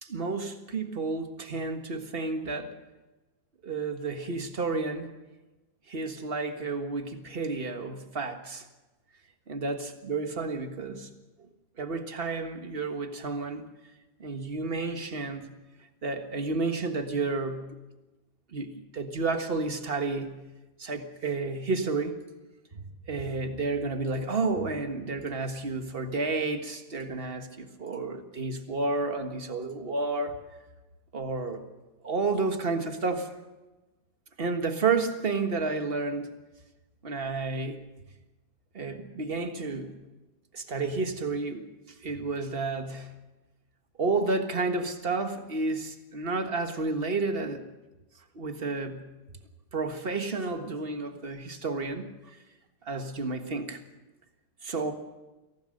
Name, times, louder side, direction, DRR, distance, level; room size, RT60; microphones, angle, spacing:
voice 1, 0.0-2.7 3.6-5.1 5.9-8.6 9.5-11.1 11.4-11.5 11.8-13.7 14.2-15.5 16.0-17.7 18.5-20.4 20.8-22.2 22.7-30.4 31.1-31.6 32.0-33.3 34.4-36.3 37.0-37.8 38.7-39.9 40.5-41.7 42.0-43.1 44.0-47.6 48.3-49.1 49.7-52.4 52.8-53.8 54.6-54.9, right 3 dB, 35° right, 7 dB, 1.7 m, -31 dB
23.5 x 17.0 x 6.5 m, 1.1 s
omnidirectional pair, 1.7 m